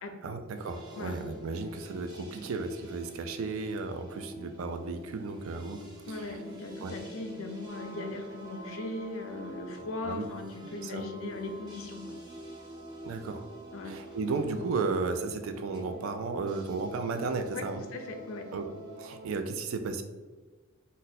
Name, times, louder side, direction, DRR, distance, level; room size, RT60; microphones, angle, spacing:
voice 1, 0.2-6.4 6.8-6.9 10.0-10.3 10.8-11.0 13.1-13.4 13.8-17.8 18.5-18.6 19.0-20.0, right 4 dB, 85° right, 7 dB, 0.3 m, -34 dB
sound 1, 0.5-19.4, right 1 dB, 20° right, 0.6 m, -47 dB
voice 2, 6.1-12.1 13.7-13.9 17.5-17.6 17.9-18.5, left 2 dB, 85° left, 4 dB, 0.5 m, -38 dB
sound 2, 7.7-15.0, right 2 dB, 70° right, 0.9 m, -53 dB
2.6 x 2.1 x 3.9 m, 1.3 s
head